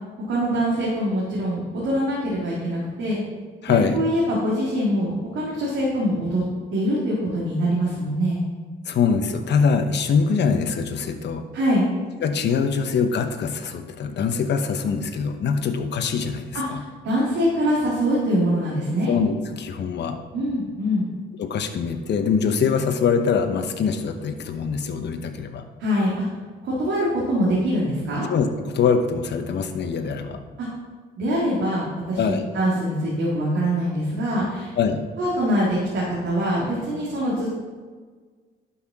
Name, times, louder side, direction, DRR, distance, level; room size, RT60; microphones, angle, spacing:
voice 1, 0.3-3.2 3.7-6.4 6.7-8.4 11.5-11.9 16.5-19.1 20.3-21.1 25.8-26.2 26.6-28.3 30.6-30.7 31.2-34.7 35.2-37.6, equal, 80° right, -6 dB, 2.1 m, -24 dB
voice 2, 3.6-4.0 8.9-11.5 12.2-16.8 19.1-20.2 21.4-25.7 28.3-30.4 32.2-32.4 34.8-35.1, left 6 dB, 60° left, 7 dB, 0.9 m, -23 dB
11.5 x 5.7 x 3.7 m, 1.5 s
cardioid pair, 90°, 20 cm